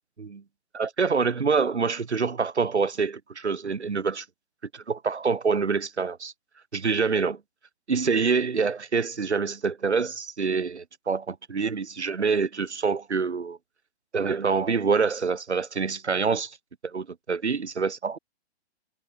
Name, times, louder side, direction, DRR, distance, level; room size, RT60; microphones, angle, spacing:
voice 1, 0.7-4.2 4.7-6.3 6.7-7.4 7.9-13.6 14.1-16.6 16.8-18.2, right 5 dB, 90° right, 6.5 m, -26 dB
hypercardioid pair, 140°, 33 cm